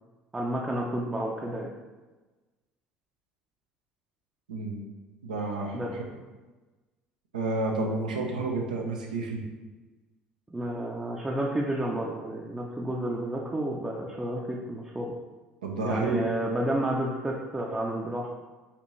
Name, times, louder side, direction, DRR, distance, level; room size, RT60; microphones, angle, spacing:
voice 1, 0.3-1.7 5.7-5.9 10.5-15.1 15.8-18.3, right 1 dB, 15° right, -3 dB, 0.5 m, -31 dB
voice 2, 4.5-4.8 5.2-5.8 7.3-9.4 15.6-16.2, right 3 dB, 85° right, 0 dB, 0.5 m, -30 dB
4.3 x 2.5 x 3.0 m, 1.2 s
hypercardioid pair, 65°, 4 cm